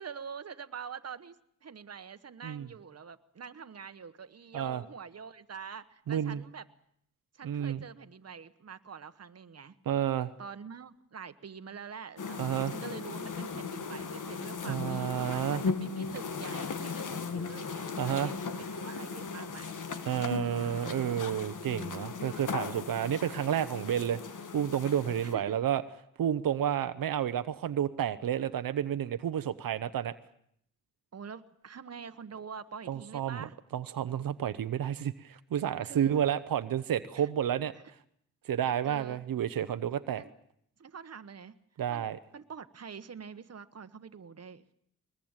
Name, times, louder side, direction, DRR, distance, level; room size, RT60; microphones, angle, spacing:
voice 1, 0.0-6.6 7.3-9.8 10.4-19.8 25.2-25.5 31.1-33.5 35.8-36.1 37.1-37.3 38.8-39.2 40.2-40.3 40.8-41.5 41.9-44.6, right 6 dB, 50° right, 11 dB, 1.3 m, -45 dB
voice 2, 6.1-6.4 7.4-7.8 9.9-10.3 12.4-12.7 14.7-15.6 18.0-18.3 20.1-24.2 24.5-25.8 26.2-30.1 32.9-33.5 33.7-37.7 38.5-40.2 41.8-42.2, right 9 dB, 85° right, 11 dB, 0.9 m, -30 dB
sound 1, 12.2-25.3, left 5 dB, 65° left, 2.0 m, -37 dB
21.5 x 21.0 x 9.0 m, 0.70 s
cardioid pair, 80°, 33 cm